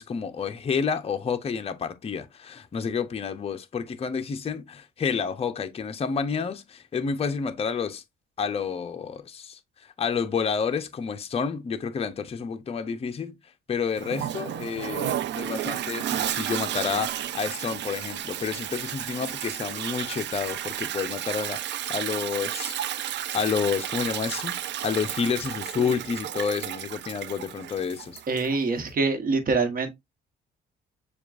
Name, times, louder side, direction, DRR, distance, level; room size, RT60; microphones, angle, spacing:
voice 1, 0.0-8.0 8.4-13.3 13.7-22.8 23.3-24.6 24.8-28.2, left 6 dB, 30° left, 0.5 m, -29 dB
Toilet flush, 14.0-28.6, right 11 dB, 65° right, 0.4 m, -32 dB
voice 2, 28.3-29.9, right 4 dB, 45° right, 1.1 m, -25 dB
6.9 x 2.3 x 2.4 m
cardioid pair, 90°, 20 cm